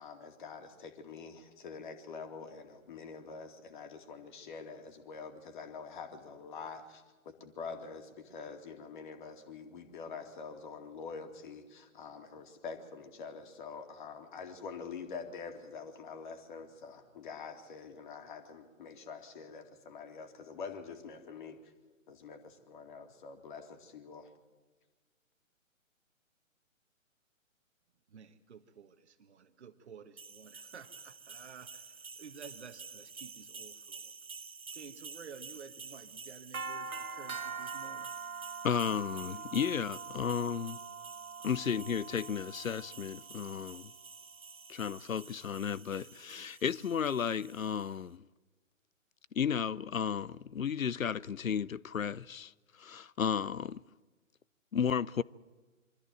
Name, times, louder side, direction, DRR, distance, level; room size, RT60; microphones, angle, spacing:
voice 1, 0.0-21.7 22.1-24.3, left 5 dB, 35° left, 2.4 m, -46 dB
voice 2, 28.1-34.1 34.7-38.1, right 6 dB, 55° right, 1.4 m, -52 dB
sound 1, 30.2-47.9, right 5 dB, 90° right, 1.0 m, -45 dB
voice 3, 38.6-40.8 41.4-43.9 44.7-48.3 49.3-52.5 52.8-53.8 54.7-55.2, left 7 dB, 80° left, 0.7 m, -33 dB
24.0 x 14.0 x 9.1 m
figure-of-eight pair, 135°, 40 cm